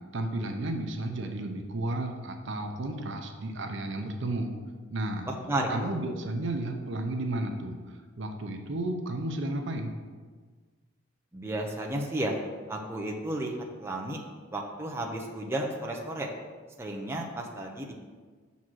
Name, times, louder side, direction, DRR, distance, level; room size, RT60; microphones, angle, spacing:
voice 1, 0.1-4.5 4.9-5.3 5.7-9.9, right 1 dB, 65° right, 4 dB, 0.7 m, -33 dB
voice 2, 5.3-5.9 11.3-12.4 12.7-14.2 14.5-16.3 16.8-17.9, right 1 dB, 15° right, -1 dB, 0.7 m, -33 dB
6.2 x 4.1 x 6.2 m, 1.5 s
head